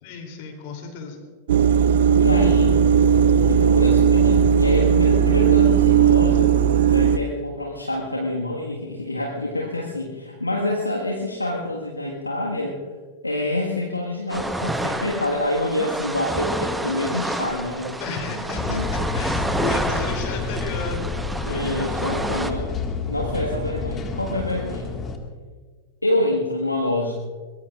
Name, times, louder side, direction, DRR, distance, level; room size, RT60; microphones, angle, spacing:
voice 1, 0.0-1.2 18.0-21.1 21.5-22.1, left 4 dB, 50° left, 3 dB, 3.0 m, -33 dB
sound 1, 1.5-7.2, right 7 dB, 60° right, 0.6 m, -17 dB
voice 2, 2.2-2.8 3.4-6.5 6.9-12.8 13.2-18.0 18.7-18.9 21.4-22.7 23.1-24.9 26.0-27.1, left 1 dB, 90° left, -2 dB, 1.6 m, -26 dB
sound 2, 14.3-22.5, right 1 dB, 5° right, 1.0 m, -29 dB
sound 3, 18.5-25.2, left 4 dB, 25° left, 1.8 m, -29 dB
22.5 x 20.0 x 2.5 m, 1.5 s
figure-of-eight pair, 95°, 0 cm